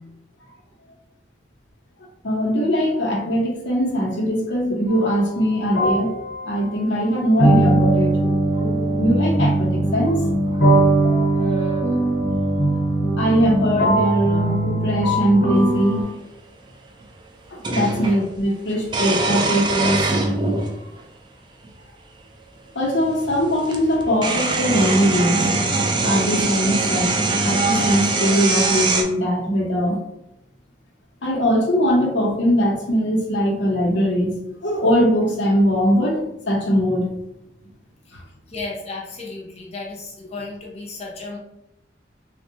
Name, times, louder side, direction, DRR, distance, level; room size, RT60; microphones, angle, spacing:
voice 1, 2.2-6.2 6.5-8.1 8.5-8.6 9.0-10.2 10.5-10.6 13.2-16.1 17.5-20.0 22.7-25.4 26.0-30.0 31.2-37.1 38.1-38.2, equal, 85° left, -1 dB, 0.8 m, -21 dB
sound 1, 4.9-5.1 5.7-16.0, right 1 dB, 70° left, 1.1 m, -20 dB
voice 2, 11.3-12.1 18.0-18.2 38.5-41.4, left 2 dB, 35° left, -3 dB, 0.6 m, -34 dB
sound 2, 15.9-16.0 17.6-18.2 18.9-20.7 21.6-21.7 23.2-23.3 23.7-29.0, right 3 dB, 25° right, 0.3 m, -22 dB
3.4 x 2.2 x 2.7 m, 0.85 s
head